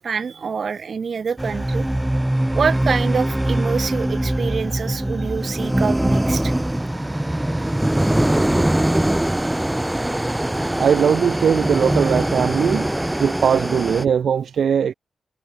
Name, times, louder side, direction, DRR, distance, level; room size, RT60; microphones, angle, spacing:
voice 1, 0.0-1.9 2.5-6.5, right 6 dB, 55° right, 1.9 m, -26 dB
sound 1, 1.4-14.1, right 1 dB, 10° right, 1.0 m, -22 dB
voice 2, 10.8-12.9 13.2-14.9, right 7 dB, 75° right, 0.9 m, -19 dB
cardioid pair, 80°, 0 cm